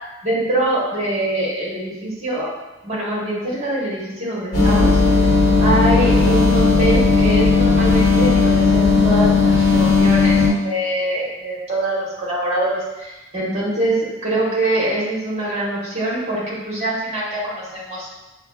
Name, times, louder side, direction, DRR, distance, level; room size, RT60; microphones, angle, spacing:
voice 1, 0.2-2.5 2.8-5.0 5.6-18.1, right 1 dB, 30° right, -6 dB, 1.2 m, -23 dB
sound 1, 4.5-10.5, left 4 dB, 70° left, 1.1 m, -15 dB
6.0 x 2.1 x 2.3 m, 1.1 s
head